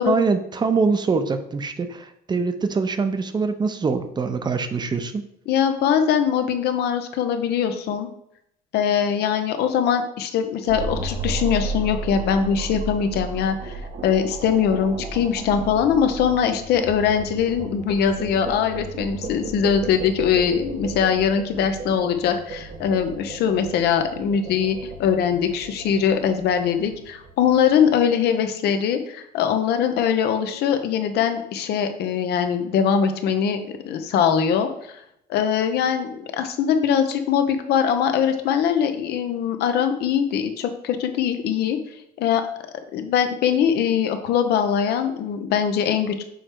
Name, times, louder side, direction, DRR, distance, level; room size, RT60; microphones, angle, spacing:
voice 1, 0.1-5.2, right 4 dB, 25° right, 9 dB, 0.6 m, -23 dB
voice 2, 5.5-8.1 8.7-13.8 14.0-33.6 33.9-35.0 35.3-41.8 42.2-42.4 42.9-46.2, left 8 dB, 75° left, 7 dB, 0.8 m, -22 dB
sound 1, 10.7-27.9, right 3 dB, 50° right, 1.0 m, -34 dB
6.3 x 3.3 x 4.5 m, 0.76 s
cardioid pair, 110°, 17 cm